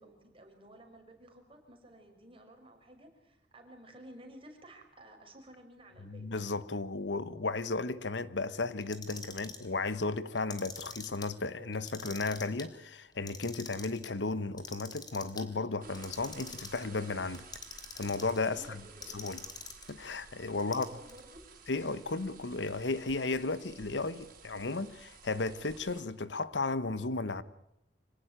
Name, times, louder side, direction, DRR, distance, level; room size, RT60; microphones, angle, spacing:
voice 1, 0.0-6.3 18.5-19.4 20.5-21.5, right 1 dB, 30° right, 5.6 m, -54 dB
voice 2, 6.0-17.5 18.0-18.8 19.1-19.4 19.9-20.9 21.7-27.4, left 3 dB, 80° left, 1.2 m, -34 dB
Clock, 8.8-9.7 10.3-11.3 11.7-12.7 13.1-14.1 14.6-15.4 15.9-16.9 17.3-18.4 19.0-19.9 20.6-21.2, left 4 dB, 25° left, 3.2 m, -45 dB
soda pour out in glass, 15.8-26.0, right 5 dB, 50° right, 5.3 m, -54 dB
26.0 x 18.0 x 9.1 m
head